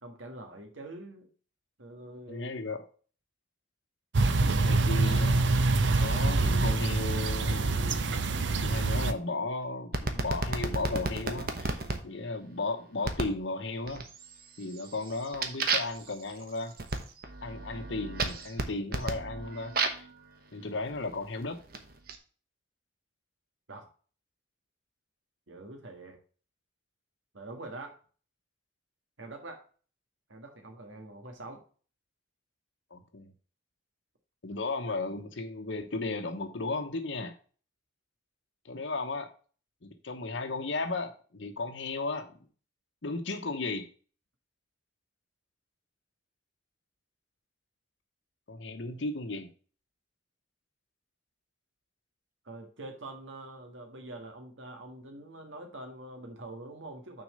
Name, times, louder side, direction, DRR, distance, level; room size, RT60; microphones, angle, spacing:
voice 1, 0.0-1.3 1.8-2.5 23.7-23.9 25.5-26.2 27.3-28.0 29.2-29.6 30.3-31.6 34.5-34.6 52.4-57.2, right 2 dB, 90° right, 3 dB, 1.7 m, -45 dB
voice 2, 2.3-2.9 4.6-5.5 6.0-8.3 8.6-14.1 14.6-16.7 17.4-20.1 20.5-21.6 32.9-33.3 34.4-37.4 38.6-39.3 39.8-42.3 43.0-43.9 48.5-49.5, left 3 dB, 70° left, 6 dB, 0.9 m, -35 dB
sound 1, 4.1-9.1, right 3 dB, 70° right, 0.7 m, -25 dB
sound 2, 9.9-12.0 13.0-13.4 13.9-14.3 14.7-20.1 20.9-22.1, right 3 dB, 50° right, 1.1 m, -33 dB
6.3 x 4.6 x 6.6 m, 0.40 s
head